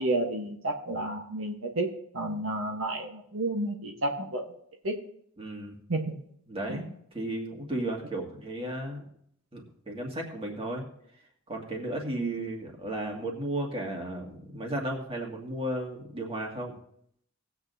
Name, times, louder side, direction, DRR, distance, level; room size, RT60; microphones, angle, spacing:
voice 1, 0.0-4.5 4.8-5.0 5.9-6.2 6.7-6.8 12.2-12.3, right 1 dB, 75° right, 2 dB, 1.2 m, -31 dB
voice 2, 5.4-5.8 6.5-9.0 9.5-10.8 11.5-16.7, right 1 dB, 25° right, 0 dB, 2.1 m, -34 dB
18.5 x 8.3 x 2.7 m, 0.69 s
head